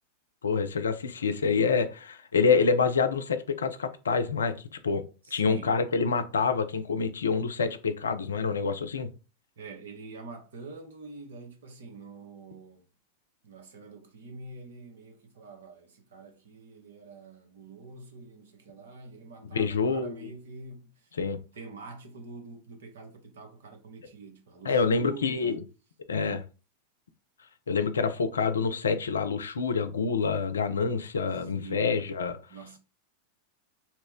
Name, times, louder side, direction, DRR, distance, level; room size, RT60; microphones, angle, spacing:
voice 1, 0.4-4.6 4.8-5.0 5.3-9.1 19.5-20.3 21.1-21.4 24.6-25.6 26.1-26.4 27.7-32.4, left 5 dB, 70° left, 0.4 m, -27 dB
voice 2, 5.2-5.7 7.3-7.4 9.6-12.9 13.4-21.2 21.5-25.6 31.6-32.0 32.5-32.8, right 3 dB, 60° right, 0.9 m, -46 dB
2.8 x 2.1 x 3.6 m
figure-of-eight pair, 90°, 0 cm